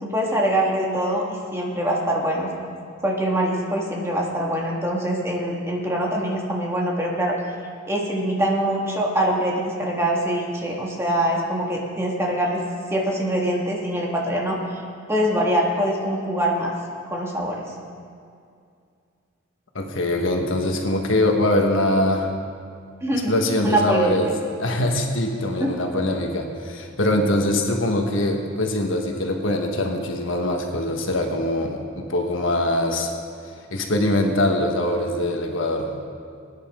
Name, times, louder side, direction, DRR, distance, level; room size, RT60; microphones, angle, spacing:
voice 1, 0.0-2.5 3.0-7.3 7.9-12.6 12.9-14.8 15.1-16.7 17.1-17.6 23.0-23.3 23.6-24.2 25.6-25.7, right 1 dB, 15° right, -2 dB, 1.8 m, -24 dB
voice 2, 19.7-22.3 23.3-33.1 33.7-35.9, left 1 dB, 70° left, 2 dB, 1.4 m, -23 dB
21.0 x 9.9 x 3.7 m, 2.3 s
head